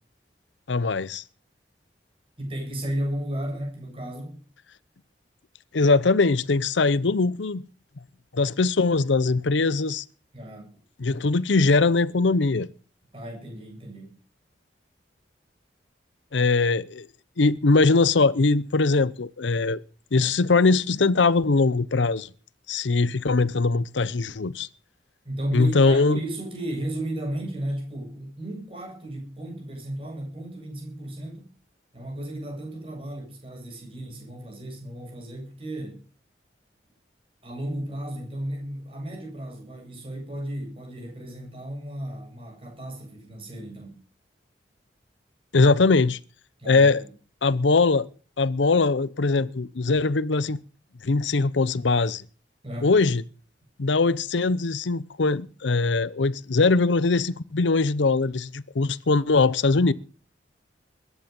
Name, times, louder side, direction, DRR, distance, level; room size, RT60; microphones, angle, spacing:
voice 1, 0.7-1.2 5.7-7.6 8.3-10.0 11.0-12.7 16.3-17.1 17.4-19.8 20.1-22.3 22.7-24.7 25.5-26.2 45.5-46.2 46.7-47.0 47.4-48.1 48.4-50.6 51.0-52.2 52.8-53.2 53.8-59.9, left 3 dB, 85° left, 0.7 m, -21 dB
voice 2, 2.4-4.4 10.3-10.7 13.1-14.1 25.2-31.5 31.9-36.0 37.4-44.0 46.6-47.1 52.6-52.9, right 1 dB, 30° right, 7.7 m, -34 dB
21.5 x 10.5 x 5.4 m
head